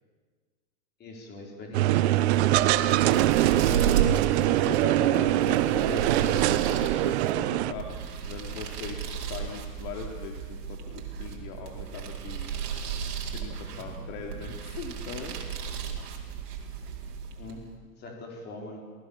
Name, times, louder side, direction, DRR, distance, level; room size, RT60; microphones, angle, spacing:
voice 1, 1.0-2.1 17.4-17.7 18.0-18.8, left 2 dB, 20° left, 0 dB, 4.6 m, -42 dB
sound 1, 1.7-7.7, right 14 dB, 45° right, 0.9 m, -23 dB
sound 2, 2.2-17.7, right 8 dB, 70° right, 4.5 m, -34 dB
voice 2, 4.4-12.5 13.3-15.5, left 6 dB, 45° left, 1 dB, 2.7 m, -40 dB
27.5 x 19.0 x 7.2 m, 1.5 s
supercardioid pair, 150°, 48 cm